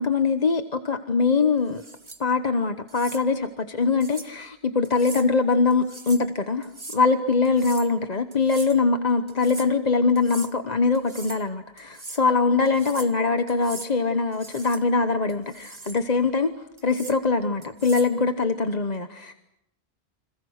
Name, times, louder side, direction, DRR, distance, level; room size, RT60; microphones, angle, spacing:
voice 1, 0.0-1.8 2.2-16.5 16.8-19.3, left 4 dB, 40° left, 8 dB, 1.2 m, -23 dB
sound 1, 1.7-2.2 2.9-3.2 4.0-4.3 4.8-5.3 5.7-6.3 6.6-7.0 7.4-7.9 8.3-8.8 9.3-9.7 10.2-10.5 10.9-11.4 11.8-12.2 12.7-13.2 13.5-13.9 14.3-14.8 15.3-16.0 16.8-17.2 17.6-18.1, right 3 dB, 25° right, 1.4 m, -41 dB
29.5 x 26.5 x 6.5 m, 0.82 s
omnidirectional pair, 1.1 m